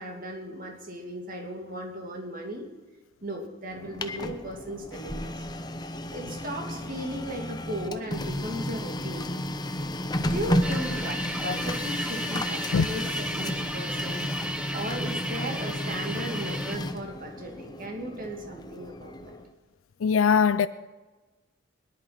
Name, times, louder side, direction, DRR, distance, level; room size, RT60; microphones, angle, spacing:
voice 1, 0.0-2.7 3.2-5.5 6.1-9.3 10.3-19.4, right 1 dB, 40° right, 2.5 m, -36 dB
Printer, 3.7-19.5, left 1 dB, 20° left, 0.8 m, -33 dB
sound 1, 10.6-16.8, right 1 dB, 5° right, 0.4 m, -34 dB
voice 2, 20.0-20.7, left 6 dB, 80° left, 0.4 m, -20 dB
21.0 x 10.5 x 5.9 m
head